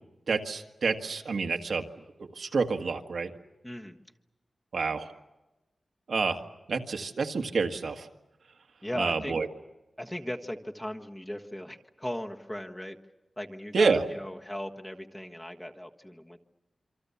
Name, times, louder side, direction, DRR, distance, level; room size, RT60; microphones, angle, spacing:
voice 1, 0.3-1.9 2.4-3.3 4.7-5.1 6.1-6.4 6.7-8.1 9.0-9.5 13.7-14.0, right 4 dB, 70° right, 5 dB, 1.7 m, -28 dB
voice 2, 3.6-4.0 8.8-9.4 10.0-13.0 13.4-16.4, equal, 10° left, 3 dB, 1.5 m, -37 dB
27.5 x 25.5 x 7.2 m, 1.0 s
wide cardioid pair, 145°, 0 cm